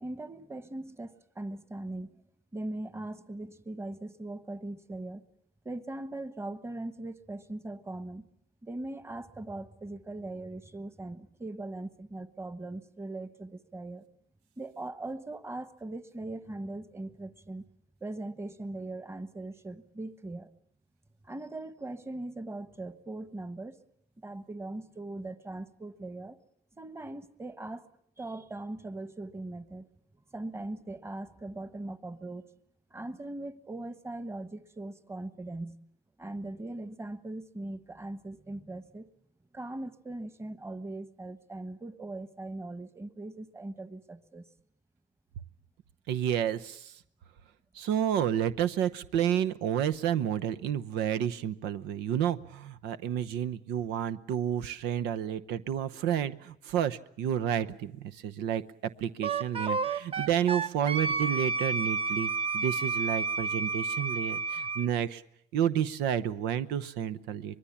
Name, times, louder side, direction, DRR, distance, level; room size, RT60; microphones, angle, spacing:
voice 1, 0.0-2.2 2.5-5.2 5.6-8.3 8.6-14.0 14.6-17.6 18.0-20.5 21.2-23.8 24.2-26.4 26.8-27.9 28.2-29.9 30.3-32.5 32.9-35.8 36.2-39.1 39.5-44.5, right 2 dB, 15° right, 13 dB, 1.3 m, -40 dB
voice 2, 46.1-46.9 47.7-65.2 65.5-67.6, right 9 dB, 90° right, 12 dB, 0.9 m, -30 dB
Wind instrument woodwind instrument, 59.2-64.9, right 4 dB, 35° right, 1.0 m, -31 dB
24.5 x 21.5 x 7.2 m, 0.71 s
cardioid pair, 110°, 17 cm